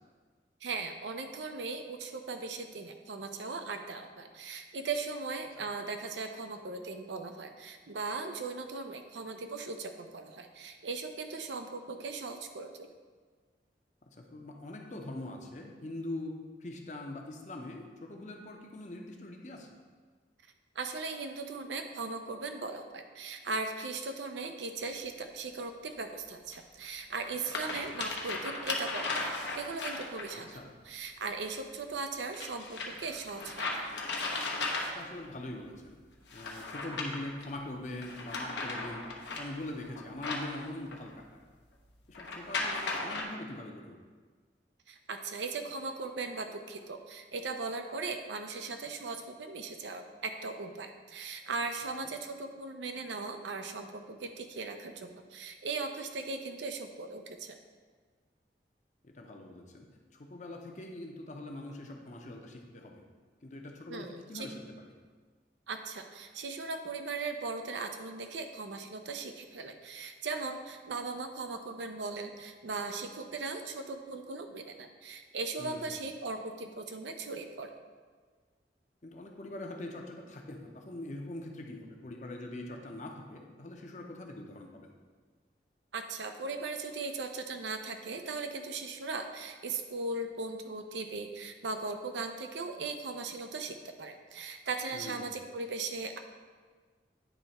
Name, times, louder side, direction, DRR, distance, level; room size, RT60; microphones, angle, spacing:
voice 1, 0.6-12.9 20.8-30.6 30.8-33.9 44.9-57.6 63.9-64.5 65.7-77.7 85.9-96.2, right 3 dB, 85° right, 6 dB, 0.6 m, -38 dB
voice 2, 14.1-19.7 30.3-30.7 34.9-36.0 36.3-39.1 39.4-41.4 42.1-44.0 59.0-59.9 60.1-63.0 63.4-64.9 75.6-75.9 79.0-84.9 94.9-95.3, left 1 dB, 40° left, 2 dB, 0.7 m, -43 dB
sound 1, 24.8-24.9 26.5-26.6 27.2-30.4 32.3-35.2 36.3-37.5 38.0-41.1 42.1-43.2, left 3 dB, 85° left, 0.9 m, -36 dB
9.2 x 3.3 x 4.2 m, 1.5 s
head